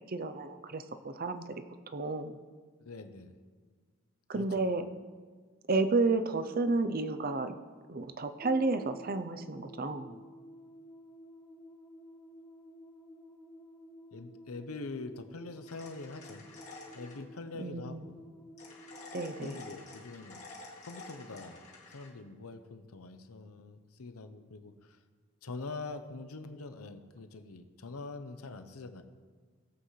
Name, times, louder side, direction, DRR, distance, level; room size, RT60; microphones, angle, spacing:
voice 1, 0.1-1.5 1.9-2.4 4.3-4.9 5.7-7.6 7.9-10.2 17.6-18.1 19.1-19.6, right 3 dB, 40° right, 10 dB, 0.5 m, -31 dB
voice 2, 2.8-3.3 4.3-4.7 14.1-16.4 16.9-18.2 19.4-20.4 20.8-21.6 21.9-25.0 25.4-29.0, left 3 dB, 80° left, 8 dB, 0.8 m, -44 dB
sound 1, 8.4-20.9, equal, 10° left, 1.0 m, -53 dB
sound 2, 15.7-17.2 18.6-22.1, left 3 dB, 30° left, 1.9 m, -50 dB
18.0 x 8.1 x 3.2 m, 1.5 s
head